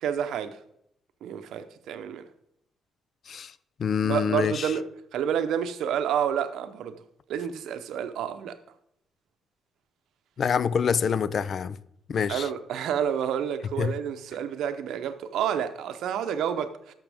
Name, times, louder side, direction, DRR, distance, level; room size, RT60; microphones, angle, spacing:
voice 1, 0.0-0.6 1.2-2.3 4.0-7.0 7.3-8.6 12.3-16.9, right 8 dB, 80° right, 0.7 m, -29 dB
voice 2, 3.8-4.7 10.4-11.8 12.1-12.5 13.8-13.9, left 7 dB, 55° left, 0.4 m, -26 dB
13.0 x 5.9 x 3.5 m
cardioid pair, 90°, 0 cm